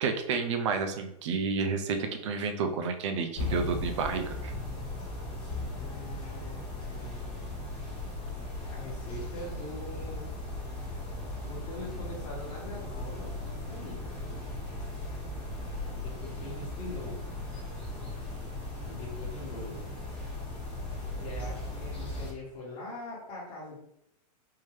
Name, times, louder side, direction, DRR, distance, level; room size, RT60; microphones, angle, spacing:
voice 1, 0.0-4.5, right 5 dB, 45° right, 6 dB, 0.5 m, -30 dB
sound 1, 3.3-22.3, left 2 dB, 5° left, 1.0 m, -37 dB
voice 2, 5.7-7.7 8.7-10.2 11.4-14.1 15.9-17.2 18.8-19.8 21.2-23.8, left 2 dB, 25° left, -5 dB, 1.4 m, -43 dB
3.7 x 2.7 x 3.1 m, 0.78 s
supercardioid pair, 170°, 21 cm